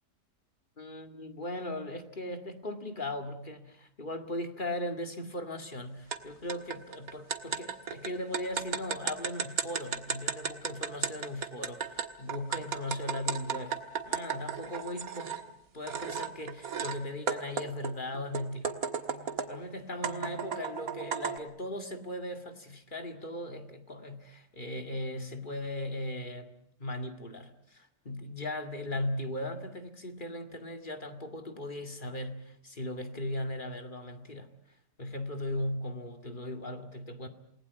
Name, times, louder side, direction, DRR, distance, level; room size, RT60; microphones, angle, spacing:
voice 1, 0.8-13.8 14.1-15.4 15.7-18.8 19.5-34.5 35.0-37.3, left 1 dB, 30° left, 6 dB, 2.3 m, -38 dB
sound 1, 6.1-6.2 6.5-15.4 15.9-17.0 17.3-19.6 20.0-21.4, right 6 dB, 60° right, 1.9 m, -34 dB
28.5 x 19.5 x 8.3 m, 0.70 s
omnidirectional pair, 1.7 m